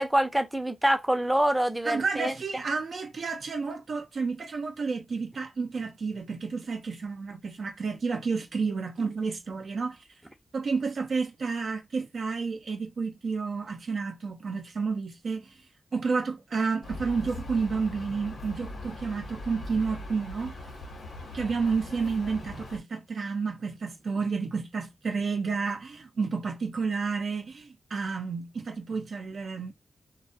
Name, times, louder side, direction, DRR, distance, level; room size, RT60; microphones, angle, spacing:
voice 1, 0.0-2.6, right 1 dB, 10° right, 0.5 m, -26 dB
voice 2, 1.8-10.0 10.5-15.5 15.9-20.5 21.3-29.7, right 4 dB, 70° right, 0.5 m, -30 dB
sound 1, 16.8-22.8, left 1 dB, 80° left, 0.9 m, -40 dB
2.2 x 2.1 x 2.6 m
cardioid pair, 50°, 0 cm